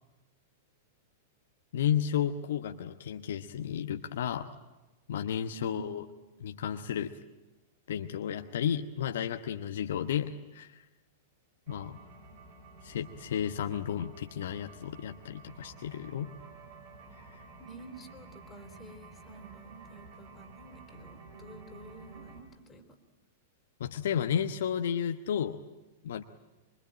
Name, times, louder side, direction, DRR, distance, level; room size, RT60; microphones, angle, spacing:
voice 1, 1.7-4.5 5.1-6.0 6.4-7.1 7.9-10.8 11.7-12.0 12.8-16.3 17.3-17.4 23.8-25.6 26.0-26.2, left 9 dB, 65° left, 6 dB, 1.1 m, -32 dB
voice 2, 5.5-6.1 17.6-23.0, right 3 dB, 20° left, 7 dB, 3.3 m, -50 dB
sound 1, 11.7-22.4, right 3 dB, 50° right, 6.1 m, -52 dB
25.0 x 24.5 x 9.1 m, 1.1 s
figure-of-eight pair, 100°, 0 cm